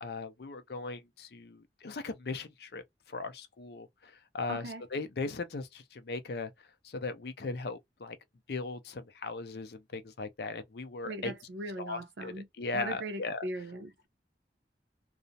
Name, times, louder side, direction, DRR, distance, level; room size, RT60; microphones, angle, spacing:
voice 1, 0.0-2.8 3.1-6.5 6.8-8.2 8.5-11.3 11.8-13.4, left 3 dB, 60° left, 0.5 m, -38 dB
voice 2, 4.5-4.8 11.0-12.5 12.7-14.1, right 1 dB, 80° right, 0.6 m, -39 dB
2.4 x 2.0 x 2.6 m
head